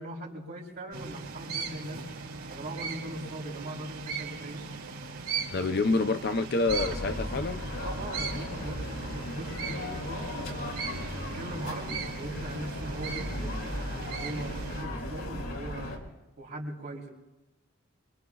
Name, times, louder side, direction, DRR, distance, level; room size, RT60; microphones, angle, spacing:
voice 1, 0.0-2.0 2.5-4.7 7.8-10.3 10.8-16.0 16.4-17.1, right 1 dB, 50° right, -4 dB, 3.6 m, -40 dB
sound 1, 0.9-14.8, right 5 dB, 80° right, 2.7 m, -39 dB
voice 2, 5.5-7.6, left 3 dB, 50° left, 9 dB, 0.6 m, -27 dB
sound 2, 6.7-16.0, left 1 dB, 85° left, 3.1 m, -36 dB
25.0 x 23.5 x 2.4 m, 1.0 s
head